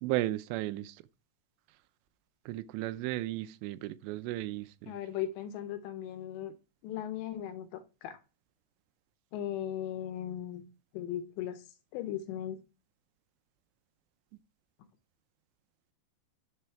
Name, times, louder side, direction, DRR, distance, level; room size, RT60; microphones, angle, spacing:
voice 1, 0.0-1.0 2.5-5.0, right 16 dB, 90° right, 2.8 m, -34 dB
voice 2, 4.9-6.5 6.8-8.2 9.3-10.6 10.9-11.6 11.9-12.6, left 11 dB, 90° left, 3.1 m, -37 dB
7.0 x 3.3 x 5.7 m
omnidirectional pair, 4.9 m